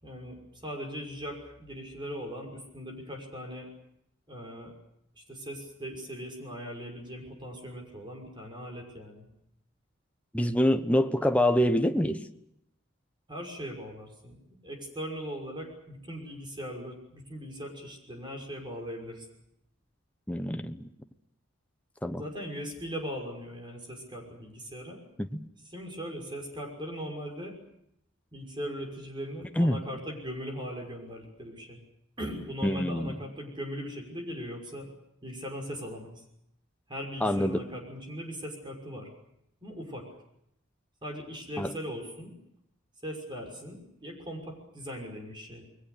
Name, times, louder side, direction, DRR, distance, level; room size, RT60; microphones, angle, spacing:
voice 1, 0.0-3.7 4.3-4.7 5.2-9.3 13.3-19.3 22.2-25.0 25.7-27.6 28.3-31.8 32.2-34.9 35.2-36.2 36.9-39.1 39.6-40.0 41.0-42.3 43.0-45.7, equal, 25° right, 2 dB, 5.9 m, -39 dB
voice 2, 10.3-12.2 20.3-20.9 22.0-22.2 25.2-25.3 29.6-29.8 32.6-33.2 37.2-37.6 41.6-41.7, equal, 5° left, 7 dB, 1.1 m, -25 dB
29.0 x 21.5 x 6.8 m, 0.77 s
head